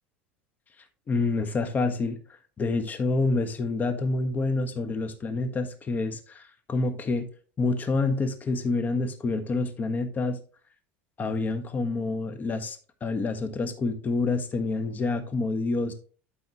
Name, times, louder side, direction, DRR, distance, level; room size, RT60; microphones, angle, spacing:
voice 1, 1.1-2.2 2.6-7.3 7.6-10.4 11.2-15.9, left 3 dB, 30° left, 6 dB, 1.4 m, -27 dB
12.0 x 4.2 x 3.0 m, 0.39 s
hypercardioid pair, 90°, 6 cm